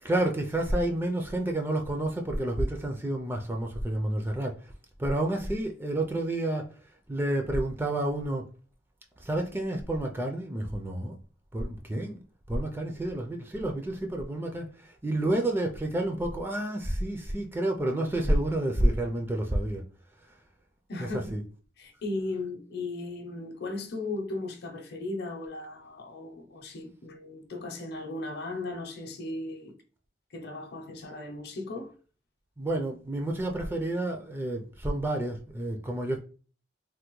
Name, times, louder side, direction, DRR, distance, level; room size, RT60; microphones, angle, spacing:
voice 1, 0.0-4.7 5.0-6.7 7.1-8.4 9.2-11.2 11.5-12.2 12.5-19.8 21.0-21.4 32.6-36.2, right 1 dB, 10° right, 0.4 m, -29 dB
voice 2, 20.9-21.2 21.8-29.7 30.3-31.9, left 2 dB, 60° left, 0.6 m, -36 dB
3.4 x 2.1 x 3.0 m
head